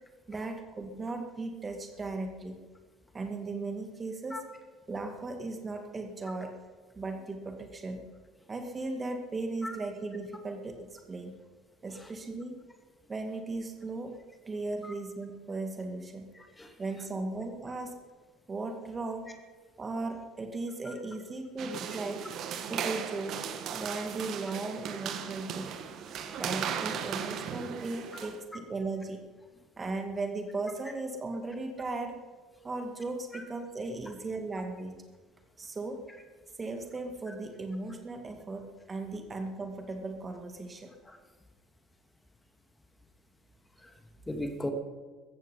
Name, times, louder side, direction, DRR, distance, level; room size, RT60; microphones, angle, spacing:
voice 1, 0.3-2.6 3.1-4.5 4.9-6.6 7.0-8.0 8.5-11.4 11.8-12.6 13.1-14.2 14.5-16.3 16.8-18.0 18.5-19.3 19.8-22.3 22.7-23.4 23.7-25.7 26.4-29.3 29.8-32.2 32.6-35.0 35.6-36.0 36.6-40.9, right 3 dB, 25° right, 6 dB, 2.0 m, -37 dB
voice 2, 16.4-16.7 20.9-21.0 26.3-26.4 41.1-41.2 43.8-43.9 44.3-44.7, left 1 dB, 15° left, 5 dB, 2.5 m, -37 dB
sound 1, 21.6-28.4, right 7 dB, 50° right, 1.7 m, -37 dB
15.0 x 14.5 x 5.6 m, 1.4 s
figure-of-eight pair, 60°, 0 cm